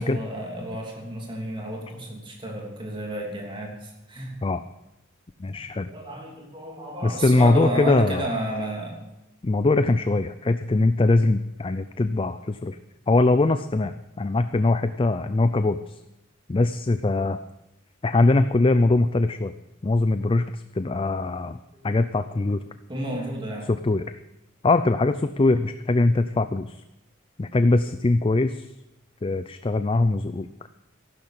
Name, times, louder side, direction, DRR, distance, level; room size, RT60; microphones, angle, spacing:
voice 1, 0.0-4.4 5.9-9.0 21.7-21.9 22.9-23.7, right 1 dB, 25° right, 0 dB, 3.1 m, -32 dB
voice 2, 5.4-5.9 7.0-8.2 9.4-12.8 13.1-16.0 16.5-17.4 18.0-19.5 19.8-21.6 21.8-22.6 23.7-24.0 24.6-26.8 27.4-28.7 29.2-30.5, left 2 dB, 25° left, 11 dB, 0.4 m, -22 dB
14.5 x 12.0 x 6.6 m, 0.90 s
head